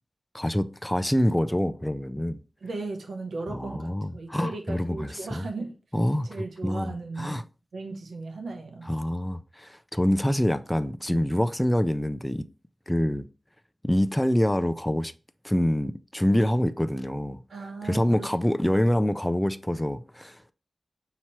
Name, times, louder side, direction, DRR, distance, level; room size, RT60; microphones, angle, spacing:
voice 1, 0.3-2.4 3.5-5.5 5.9-6.3 6.6-7.4 8.8-12.4 12.9-13.3 13.8-15.1 15.4-17.4 17.8-20.5, equal, 10° left, 0.4 m, -26 dB
voice 2, 2.6-5.7 6.2-7.5 7.7-8.9 17.5-18.3, right 3 dB, 85° right, 0.8 m, -36 dB
5.6 x 3.0 x 3.0 m
cardioid pair, 55°, 0 cm